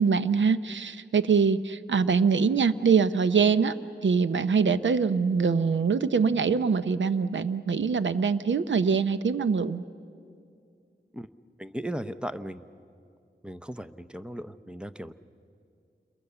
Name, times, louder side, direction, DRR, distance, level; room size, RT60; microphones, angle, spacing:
voice 1, 0.0-3.8 4.0-9.8, right 5 dB, 85° right, 13 dB, 0.7 m, -24 dB
voice 2, 11.6-12.6 13.4-15.1, right 1 dB, 5° right, 11 dB, 0.7 m, -37 dB
28.0 x 22.5 x 6.9 m, 2.4 s
wide cardioid pair, 75°, 19 cm